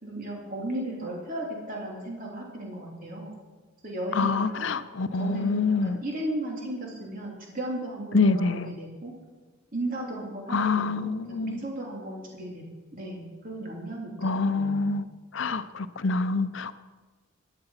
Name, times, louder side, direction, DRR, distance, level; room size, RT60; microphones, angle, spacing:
voice 1, 0.0-3.3 3.8-4.7 5.2-9.1 9.7-12.6 12.9-14.9, right 1 dB, 45° right, -2 dB, 3.2 m, -35 dB
voice 2, 4.1-6.0 8.1-8.7 10.5-11.6 14.2-15.0 15.3-16.7, left 4 dB, 65° left, 13 dB, 0.7 m, -26 dB
14.5 x 11.0 x 5.7 m, 1.3 s
head